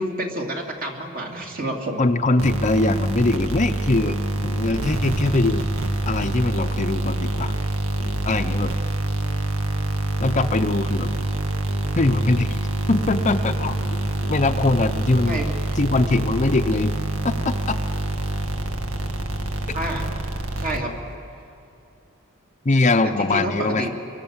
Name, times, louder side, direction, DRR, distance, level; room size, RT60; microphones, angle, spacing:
voice 1, 0.0-2.0 15.2-15.5 19.7-20.1 20.6-21.0 23.0-23.9, right 1 dB, 45° right, 0 dB, 2.9 m, -28 dB
voice 2, 2.0-5.7 6.1-7.5 8.3-8.7 10.2-11.1 12.0-12.6 12.9-13.7 14.3-15.4 15.8-17.0 17.2-17.8 22.6-23.9, left 2 dB, 35° left, 7 dB, 0.7 m, -22 dB
sound 1, 2.4-21.2, right 2 dB, 90° right, 1.7 m, -26 dB
27.5 x 24.0 x 7.3 m, 2.7 s
head